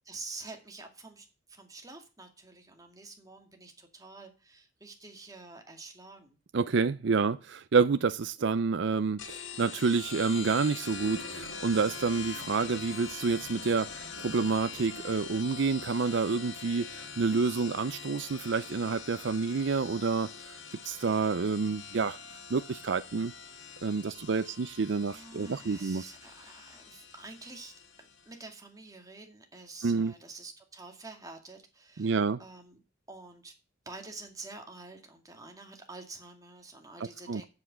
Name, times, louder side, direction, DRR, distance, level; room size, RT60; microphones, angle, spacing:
voice 1, 0.1-6.4 24.2-24.6 25.0-27.7 28.0-32.8 33.1-33.5 33.9-37.5, right 3 dB, 20° right, 2.3 m, -48 dB
voice 2, 6.5-20.6 20.8-22.2 22.5-23.3 23.8-26.0 29.8-30.1 32.0-32.4 37.0-37.4, right 4 dB, 65° right, 0.5 m, -28 dB
sound 1, 9.2-28.3, left 5 dB, 75° left, 1.8 m, -43 dB
8.1 x 7.3 x 8.7 m
head